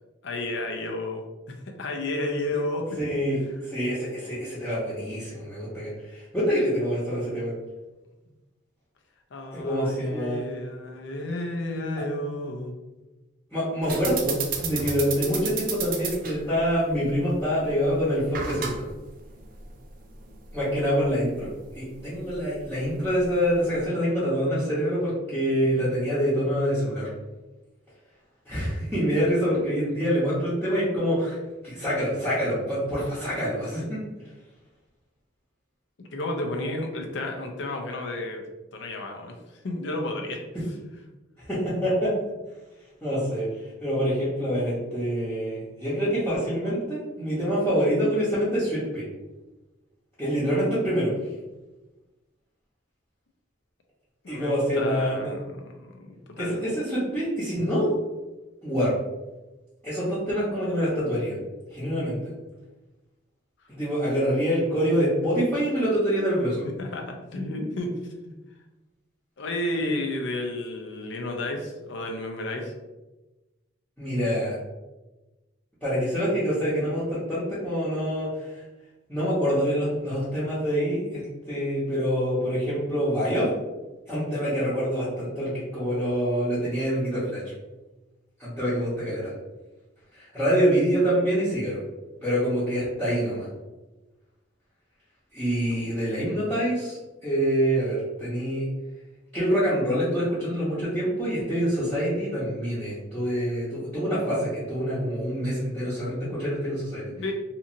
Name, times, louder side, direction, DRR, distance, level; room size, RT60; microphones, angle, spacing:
voice 1, 0.2-1.2 1.7-2.8 3.3-3.5 9.3-12.7 36.1-38.4 38.7-39.4 39.6-40.4 54.2-56.5 66.8-67.9 68.2-68.3 69.4-72.7 107.2-107.3, left 1 dB, 65° left, 3 dB, 0.5 m, -32 dB
voice 2, 3.0-7.5 9.5-10.4 13.5-18.9 20.5-27.1 28.5-31.4 31.6-34.0 41.4-42.1 43.0-43.5 43.8-49.0 50.2-51.1 54.3-55.3 56.4-57.9 58.6-58.9 59.8-61.4 61.7-62.2 63.7-66.6 74.0-74.5 75.8-78.6 79.1-83.5 84.1-87.4 88.4-89.3 90.1-91.8 92.2-93.5 95.3-98.7 99.3-107.0, equal, 5° left, -13 dB, 0.8 m, -26 dB
sound 1, 13.8-23.9, right 5 dB, 45° right, 0.4 m, -35 dB
2.9 x 2.5 x 2.5 m, 1.1 s
head